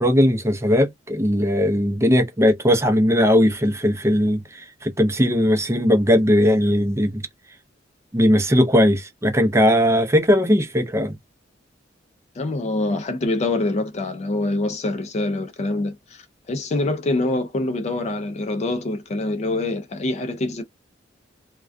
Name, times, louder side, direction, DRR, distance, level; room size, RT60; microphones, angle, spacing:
voice 1, 0.0-7.2 8.1-11.1, equal, 15° right, 0.5 m, -18 dB
voice 2, 12.4-20.6, left 2 dB, 35° left, 0.4 m, -25 dB
2.2 x 2.2 x 2.5 m
head